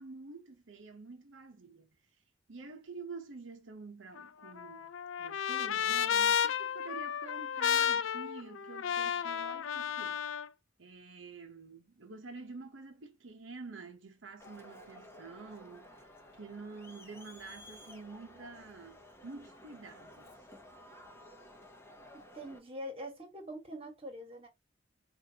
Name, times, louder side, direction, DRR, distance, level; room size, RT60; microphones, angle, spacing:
voice 1, 0.0-2.0 2.5-4.9 5.2-10.2 10.8-16.0 16.3-20.3, right 3 dB, 80° right, 0.9 m, -48 dB
Trumpet, 4.2-10.5, left 8 dB, 85° left, 0.4 m, -32 dB
Crowd, 14.4-22.6, left 1 dB, 15° left, 0.9 m, -54 dB
voice 2, 22.3-24.5, equal, 30° right, 1.5 m, -44 dB
5.0 x 2.7 x 2.8 m
head